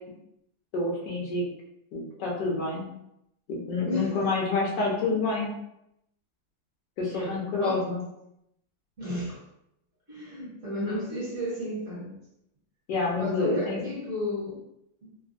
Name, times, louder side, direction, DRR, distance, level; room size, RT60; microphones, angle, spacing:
voice 1, 0.7-1.4 1.9-2.9 3.5-5.5 7.0-8.0 12.9-13.9, left 3 dB, 70° left, -2 dB, 1.2 m, -28 dB
voice 2, 3.9-4.2 7.1-7.8 9.0-9.4 10.1-12.1 13.2-14.6 15.0-15.1, left 1 dB, 50° right, -7 dB, 1.3 m, -33 dB
3.2 x 2.2 x 2.5 m, 0.81 s
omnidirectional pair, 2.0 m